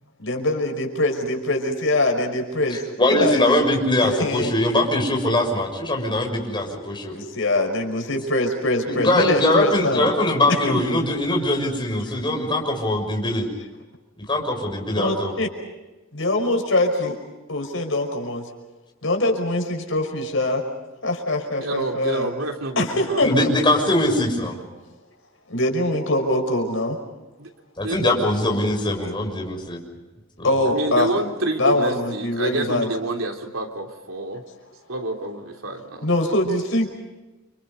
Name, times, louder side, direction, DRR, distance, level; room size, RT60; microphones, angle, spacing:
voice 1, 0.2-2.8 3.1-3.4 4.0-4.5 7.1-10.1 10.5-10.8 15.0-15.5 16.1-17.2 17.5-18.5 19.0-20.6 21.0-22.3 22.8-23.5 25.5-27.0 30.4-31.1 31.6-32.9 36.0-36.9, left 1 dB, 75° left, 3 dB, 5.7 m, -23 dB
voice 2, 2.7-7.1 8.8-13.5 14.3-15.3 23.2-24.5 27.8-29.8 30.4-30.5, left 1 dB, 25° left, 1 dB, 6.5 m, -22 dB
voice 3, 21.6-23.3 27.4-27.5 27.8-28.2 30.6-34.4 34.9-36.1, right 2 dB, 85° right, 3 dB, 3.4 m, -28 dB
30.0 x 27.0 x 5.5 m, 1.1 s
head